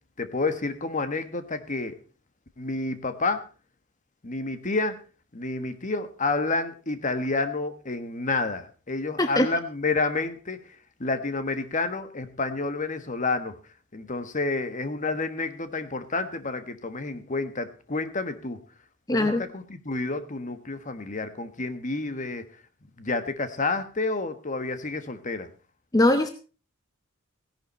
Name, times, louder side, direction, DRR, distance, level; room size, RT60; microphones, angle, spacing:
voice 1, 0.2-2.0 2.6-3.4 4.2-5.0 5.3-10.6 11.0-13.5 13.9-18.6 19.1-22.5 23.0-25.5, left 3 dB, 40° left, 10 dB, 1.4 m, -29 dB
voice 2, 19.1-19.4 25.9-26.3, left 1 dB, 20° left, 8 dB, 0.8 m, -21 dB
16.5 x 11.0 x 4.3 m, 0.36 s
head